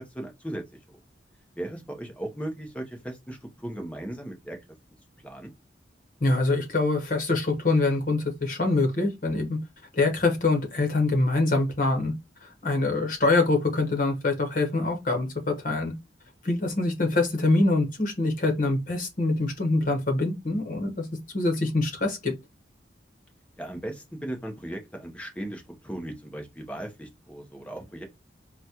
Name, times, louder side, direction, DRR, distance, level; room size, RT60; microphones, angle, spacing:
voice 1, 0.1-0.6 1.6-4.6 5.2-5.5 23.6-28.0, right 1 dB, 5° left, 0.8 m, -37 dB
voice 2, 6.2-9.6 9.9-12.1 12.4-15.9 16.4-21.1 21.3-22.3, left 2 dB, 45° left, 1.0 m, -24 dB
4.1 x 2.2 x 2.8 m
head